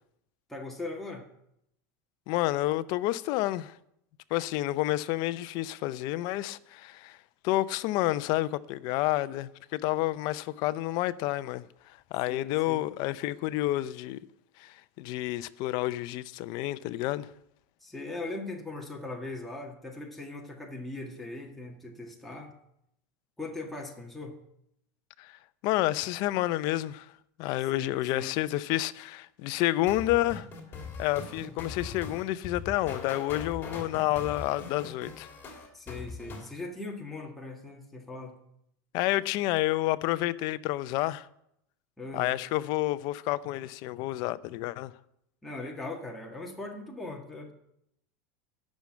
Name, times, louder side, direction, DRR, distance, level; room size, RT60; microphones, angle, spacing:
voice 1, 0.5-1.2 12.3-12.8 17.8-22.5 23.4-24.3 27.7-28.3 35.7-38.4 42.0-42.3 45.4-47.5, left 2 dB, ahead, 1.7 m, -40 dB
voice 2, 2.3-3.7 4.3-7.2 7.4-11.6 12.1-14.2 14.6-17.3 25.2-25.3 25.6-27.1 27.4-30.5 31.0-35.3 38.9-41.3 42.1-44.9, left 16 dB, 50° left, 0.5 m, -29 dB
sound 1, 29.9-36.5, left 4 dB, 25° left, 3.0 m, -41 dB
11.5 x 6.4 x 8.5 m
supercardioid pair, 140°, 9 cm